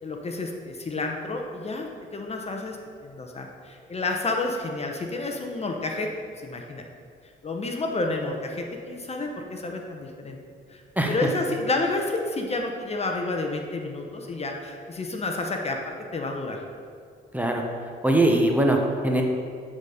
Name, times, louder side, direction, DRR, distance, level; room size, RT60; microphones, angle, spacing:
voice 1, 0.0-6.1 6.4-6.8 7.4-10.4 10.7-16.6, left 2 dB, 30° left, 2 dB, 0.8 m, -30 dB
voice 2, 17.3-17.6 18.0-19.2, right 1 dB, 10° right, 1 dB, 0.9 m, -21 dB
8.8 x 4.2 x 4.9 m, 2.2 s
cardioid pair, 90°, 20 cm